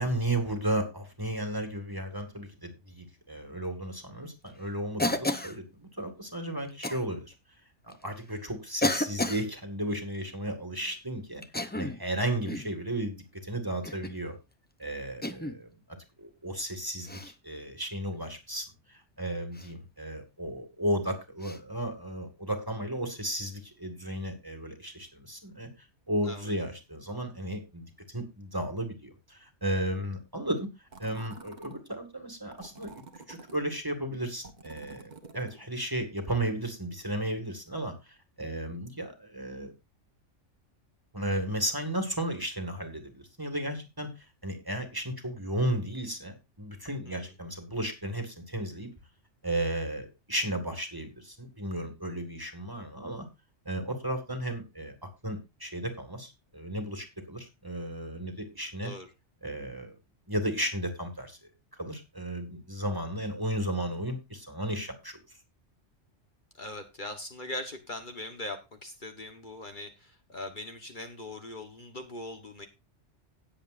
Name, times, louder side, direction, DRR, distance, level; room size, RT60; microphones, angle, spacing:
voice 1, 0.0-7.3 7.8-11.4 11.7-14.4 14.8-15.7 16.2-25.7 26.1-39.7 41.1-48.9 49.4-53.3 53.7-58.9 59.4-59.9 60.3-61.4 61.8-65.4, right 1 dB, 20° right, 5 dB, 2.0 m, -34 dB
Cough, 5.0-5.6 6.8-7.0 7.9-8.0 8.8-9.5 11.4-12.0 12.5-12.7 13.8-14.2 15.2-15.6 17.0-17.3 19.5-19.7 21.4-21.6, left 1 dB, 10° left, 0.6 m, -31 dB
sound 1, 30.9-31.8 32.5-33.6 34.4-35.6, right 4 dB, 40° right, 1.4 m, -49 dB
voice 2, 58.8-59.1 66.6-72.7, left 2 dB, 45° left, 5 dB, 1.4 m, -41 dB
17.5 x 7.7 x 2.6 m, 0.25 s
omnidirectional pair, 1.2 m